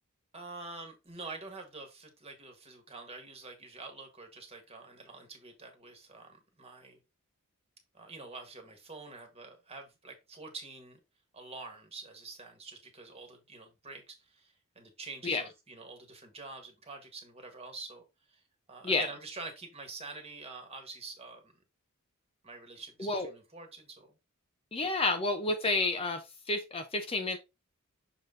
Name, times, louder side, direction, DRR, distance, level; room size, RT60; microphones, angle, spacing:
voice 1, 0.3-7.0 7.9-11.0 11.3-18.0 18.3-18.4 18.7-21.5 22.4-24.1, right 3 dB, 25° right, 1.6 m, -46 dB
voice 2, 23.0-23.3 24.7-27.4, left 3 dB, 25° left, 0.7 m, -30 dB
6.7 x 4.0 x 3.7 m
head